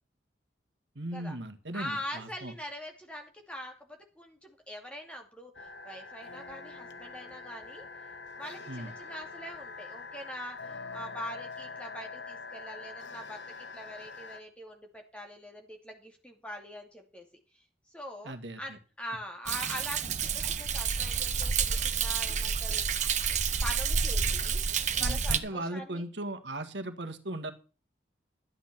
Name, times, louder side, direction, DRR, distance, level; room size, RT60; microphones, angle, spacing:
voice 1, 0.9-2.5 8.7-8.9 18.2-18.8 25.0-27.5, right 1 dB, 75° right, 7 dB, 1.7 m, -38 dB
voice 2, 1.7-3.7 4.2-7.8 8.3-17.3 17.9-24.6 25.0-26.0, equal, 5° left, 2 dB, 2.5 m, -43 dB
sound 1, 5.5-14.4, left 4 dB, 75° left, 1.4 m, -44 dB
Thunder, 19.5-25.4, right 6 dB, 40° right, 1.1 m, -29 dB
12.5 x 8.9 x 6.0 m, 0.35 s
head